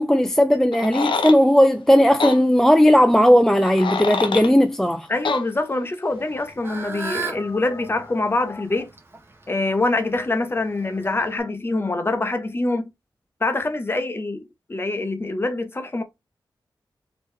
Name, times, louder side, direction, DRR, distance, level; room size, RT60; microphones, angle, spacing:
voice 1, 0.0-5.1, equal, 5° left, 0.3 m, -16 dB
sound 1, 0.7-1.4 2.2-2.4 3.5-4.5 5.2-5.4, left 4 dB, 80° left, 0.6 m, -25 dB
voice 2, 5.1-8.9 9.5-12.9 13.4-16.0, left 2 dB, 30° left, 0.7 m, -25 dB
Fowl / Bird, 6.1-11.4, right 4 dB, 30° right, 0.9 m, -36 dB
3.5 x 3.0 x 3.1 m
wide cardioid pair, 100°, 8 cm